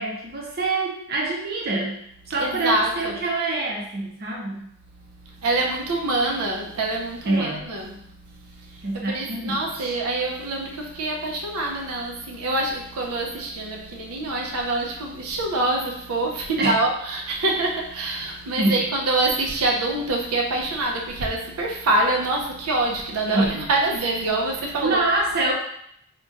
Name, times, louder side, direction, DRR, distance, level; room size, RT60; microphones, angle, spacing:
voice 1, 0.0-4.7 7.3-7.6 8.8-10.0 16.6-16.8 18.6-18.9 23.3-23.6 24.8-25.5, right 2 dB, 45° right, -2 dB, 0.5 m, -25 dB
voice 2, 2.4-3.2 5.2-8.0 8.3-25.0, right 2 dB, 90° right, 0 dB, 0.6 m, -25 dB
2.5 x 2.2 x 3.9 m, 0.71 s
head